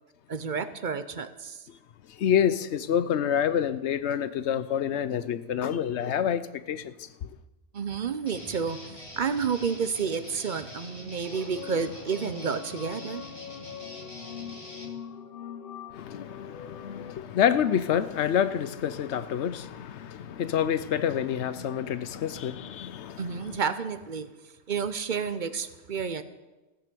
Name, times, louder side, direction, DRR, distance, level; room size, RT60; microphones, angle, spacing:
voice 1, 0.3-1.6 7.7-13.2 23.2-24.3 24.7-26.2, right 6 dB, 50° right, 0.8 m, -30 dB
voice 2, 2.1-7.3 15.9-23.6, left 9 dB, 85° left, 1.0 m, -28 dB
Guitar, 8.2-15.0, left 1 dB, 30° left, 2.0 m, -45 dB
sound 1, 11.0-17.1, left 7 dB, 60° left, 0.9 m, -42 dB
15.5 x 9.1 x 6.8 m
omnidirectional pair, 1.1 m